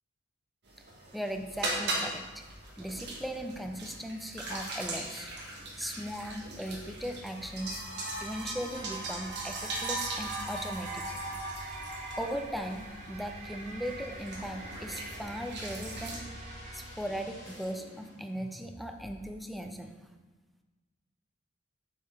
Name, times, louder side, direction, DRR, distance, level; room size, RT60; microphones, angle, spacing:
sound 1, 0.7-16.2, right 2 dB, 60° right, 1.2 m, -39 dB
voice 1, 1.1-2.4 2.8-5.3 5.8-7.8 8.2-11.0 12.2-16.2 16.7-19.9, equal, ahead, 5 dB, 0.4 m, -38 dB
sound 2, 2.5-19.3, equal, 20° left, 1.9 m, -51 dB
sound 3, 8.7-17.3, right 2 dB, 35° right, 0.7 m, -47 dB
7.0 x 5.7 x 3.3 m, 1.2 s
head